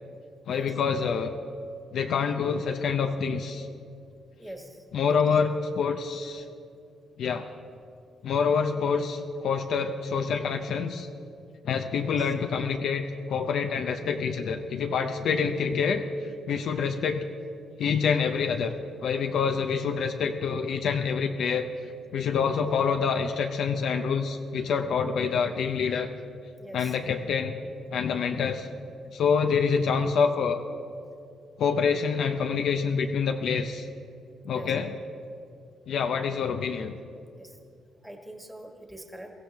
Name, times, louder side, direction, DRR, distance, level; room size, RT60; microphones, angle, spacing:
voice 1, 0.5-1.3 1.9-3.7 4.9-6.4 7.2-7.5 8.2-11.1 11.6-16.0 16.5-17.3 17.8-18.7 19.0-21.7 22.1-26.1 26.7-27.6 27.9-28.7 29.1-30.6 31.6-33.9 34.4-34.9 35.9-37.0, left 6 dB, 70° left, 5 dB, 0.7 m, -26 dB
voice 2, 4.4-4.8 5.1-5.2 12.0-12.3 26.6-27.0 34.5-34.8 37.3-37.6 38.0-39.3, right 1 dB, 5° right, 2 dB, 1.7 m, -43 dB
23.0 x 15.0 x 3.5 m, 2.4 s
cardioid pair, 120°, 0 cm